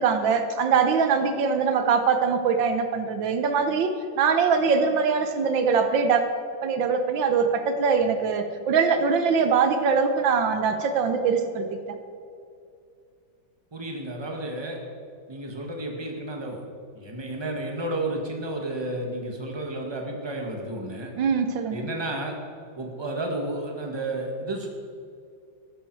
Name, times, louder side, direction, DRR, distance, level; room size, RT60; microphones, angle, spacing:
voice 1, 0.0-6.2 6.6-12.0 21.1-21.9, right 5 dB, 80° right, 7 dB, 1.6 m, -23 dB
voice 2, 13.7-14.8 15.3-16.6 16.9-21.1 21.7-22.4 22.8-24.7, right 1 dB, 15° right, 1 dB, 1.6 m, -32 dB
14.0 x 11.5 x 4.8 m, 2.4 s
omnidirectional pair, 2.1 m